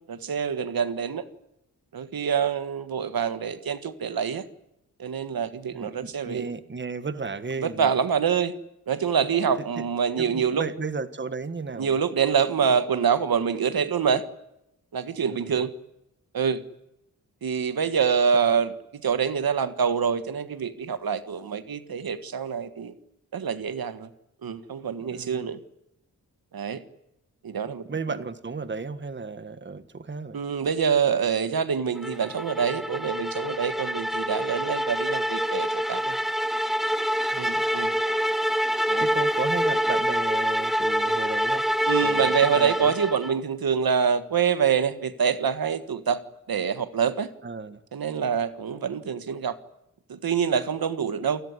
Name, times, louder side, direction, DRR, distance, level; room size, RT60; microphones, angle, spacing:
voice 1, 0.1-1.2 1.9-4.4 5.0-6.5 7.6-8.6 8.9-10.6 11.8-14.2 14.9-15.7 16.3-16.6 17.4-22.9 23.3-24.1 24.4-25.6 26.5-26.8 27.4-27.9 30.3-36.2 37.4-37.9 38.9-39.1 41.9-46.2 46.5-47.3 47.9-49.6 50.1-51.4, right 7 dB, 85° right, 12 dB, 1.7 m, -26 dB
voice 2, 5.7-7.9 9.8-9.9 10.2-12.0 12.6-12.8 15.3-15.7 25.1-25.5 27.9-30.4 37.3-37.6 39.0-41.7 42.0-42.9 47.4-47.8, right 4 dB, 30° right, 12 dB, 1.6 m, -34 dB
sound 1, 32.0-43.4, equal, ahead, 1.1 m, -26 dB
28.5 x 19.5 x 9.7 m, 0.84 s
wide cardioid pair, 155°, 35 cm